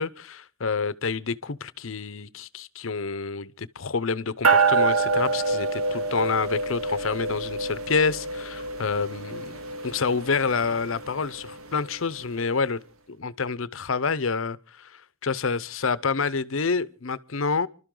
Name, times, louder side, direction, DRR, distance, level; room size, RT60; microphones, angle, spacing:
voice 1, 0.0-9.4 9.8-12.8 13.1-17.7, left 5 dB, 70° left, 0.8 m, -28 dB
sound 1, 4.4-12.1, right 4 dB, 85° right, 1.9 m, -27 dB
30.0 x 12.5 x 3.8 m
head